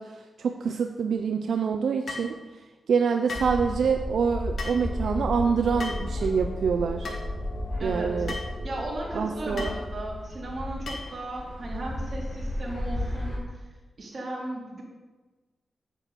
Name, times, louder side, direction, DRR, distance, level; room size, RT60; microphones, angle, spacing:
voice 1, 0.0-2.4 2.9-7.1 7.8-8.3 9.1-9.7, right 6 dB, 85° right, 5 dB, 0.7 m, -26 dB
sound 1, 2.1-2.3 3.3-3.6 4.6-4.8 5.8-6.1 7.0-7.2 8.3-8.5 9.6-9.8 10.9-11.2, left 3 dB, 60° left, 2.3 m, -36 dB
sound 2, 3.3-13.4, left 1 dB, 30° left, 4.2 m, -33 dB
sound 3, 4.7-9.9, left 1 dB, 15° left, 1.7 m, -42 dB
voice 2, 7.8-8.1 8.6-13.6 14.0-14.8, right 1 dB, 45° right, -3 dB, 4.1 m, -36 dB
9.2 x 9.1 x 7.8 m, 1.2 s
wide cardioid pair, 115°, 0 cm